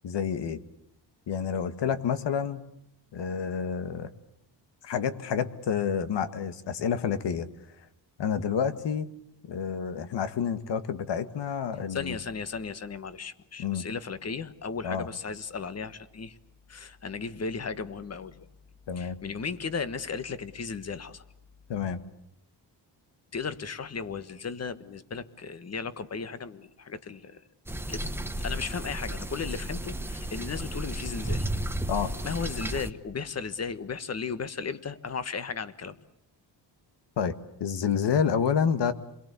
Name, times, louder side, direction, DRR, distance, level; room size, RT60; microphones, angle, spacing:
voice 1, 0.0-0.6 1.3-2.6 3.1-4.1 4.8-7.5 8.2-9.1 9.5-12.2 13.6-13.9 14.8-15.1 18.9-19.2 21.7-22.0 31.9-32.1 37.2-37.3 37.6-38.9, left 7 dB, 70° left, 11 dB, 1.9 m, -29 dB
voice 2, 11.9-16.3 16.7-18.4 19.0-21.2 23.3-27.4 27.9-28.1 28.4-31.5 32.2-36.0, left 5 dB, 35° left, 12 dB, 1.5 m, -35 dB
sound 1, 27.7-32.9, right 1 dB, 5° right, 1.1 m, -33 dB
29.0 x 22.5 x 8.4 m, 0.76 s
cardioid pair, 125°, 44 cm